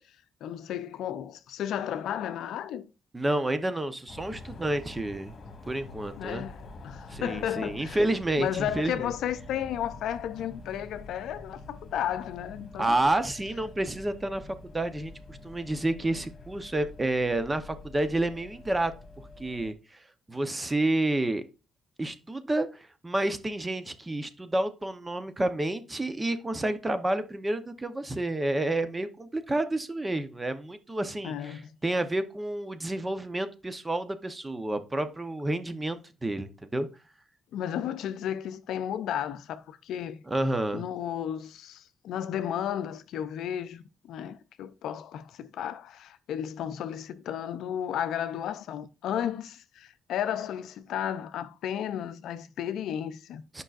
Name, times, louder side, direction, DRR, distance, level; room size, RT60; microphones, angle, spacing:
voice 1, 0.4-2.9 6.2-8.0 8.4-13.0 31.2-31.7 37.5-40.2 40.7-53.4, left 10 dB, 80° left, 0.5 m, -33 dB
voice 2, 3.1-5.3 5.7-6.4 7.1-9.1 12.8-18.9 19.4-20.0 20.3-21.4 22.0-36.9 40.3-40.8 53.5-53.6, right 1 dB, 20° right, 0.8 m, -30 dB
sound 1, 4.1-19.7, left 3 dB, 50° left, 1.6 m, -46 dB
8.9 x 5.4 x 2.5 m
cardioid pair, 90°, 0 cm